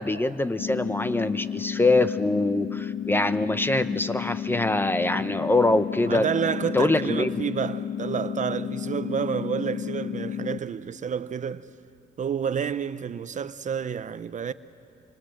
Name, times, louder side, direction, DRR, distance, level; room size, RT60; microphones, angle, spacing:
voice 1, 0.0-6.2 6.7-7.3, left 2 dB, 10° left, 0.8 m, -24 dB
sound 1, 0.6-10.6, left 8 dB, 70° left, 1.1 m, -32 dB
voice 2, 6.1-11.7 12.2-14.5, right 7 dB, 45° right, 0.7 m, -29 dB
27.0 x 25.0 x 7.8 m
cardioid pair, 90°, 18 cm